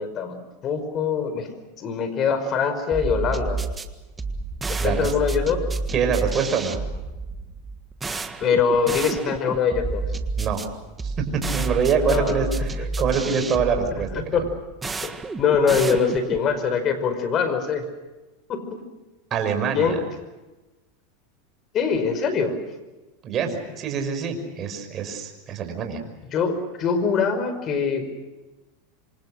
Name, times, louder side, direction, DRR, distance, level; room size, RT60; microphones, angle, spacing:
voice 1, 0.0-1.5 1.8-3.6 4.7-5.6 8.4-10.0 12.1-12.4 12.8-12.9 14.3-14.5 15.0-17.9 18.5-18.6 19.7-20.0 21.7-22.6 26.3-28.0, left 6 dB, 35° left, 10 dB, 5.2 m, -23 dB
sound 1, 2.9-16.5, right 3 dB, 15° right, 1.7 m, -30 dB
voice 2, 4.8-5.1 5.9-6.8 10.4-10.6 11.0-14.4 19.3-20.0 23.2-26.0, right 6 dB, 35° right, 6 dB, 5.8 m, -25 dB
28.0 x 25.5 x 6.5 m, 1.1 s
supercardioid pair, 125°, 0 cm